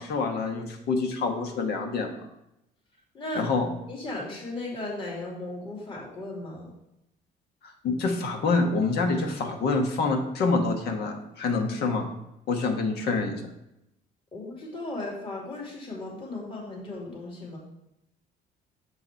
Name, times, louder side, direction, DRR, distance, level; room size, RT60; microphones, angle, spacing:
voice 1, 0.0-2.1 3.3-3.7 7.6-12.1 12.5-13.4, left 3 dB, 75° left, 4 dB, 1.3 m, -26 dB
voice 2, 3.9-6.7 14.3-17.6, left 2 dB, 30° left, -3 dB, 2.4 m, -36 dB
6.8 x 4.9 x 4.4 m, 0.86 s
cardioid pair, 110°, 17 cm